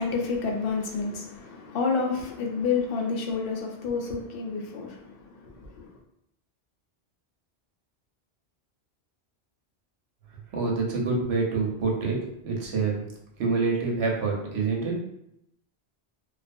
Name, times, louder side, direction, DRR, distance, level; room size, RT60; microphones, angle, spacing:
voice 1, 0.0-6.0, left 5 dB, 65° left, 0.7 m, -29 dB
voice 2, 10.5-13.1 13.4-15.0, right 4 dB, 75° right, 0.9 m, -26 dB
2.4 x 2.3 x 2.5 m
omnidirectional pair, 1.1 m